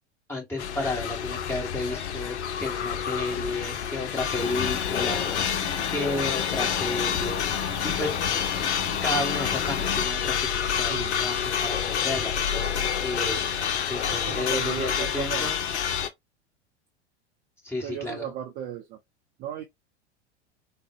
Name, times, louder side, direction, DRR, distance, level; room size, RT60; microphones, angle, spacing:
voice 1, 0.3-5.4 5.9-8.2 9.0-13.5 13.9-15.6 17.6-18.3, left 2 dB, 5° left, 1.2 m, -33 dB
sound 1, 0.6-16.1, left 8 dB, 75° left, 0.6 m, -28 dB
sound 2, 4.4-10.1, left 7 dB, 45° left, 1.2 m, -34 dB
voice 2, 14.1-15.5 17.8-19.0 19.4-19.6, right 9 dB, 30° right, 0.4 m, -35 dB
3.6 x 2.0 x 2.2 m
figure-of-eight pair, 90°, 34 cm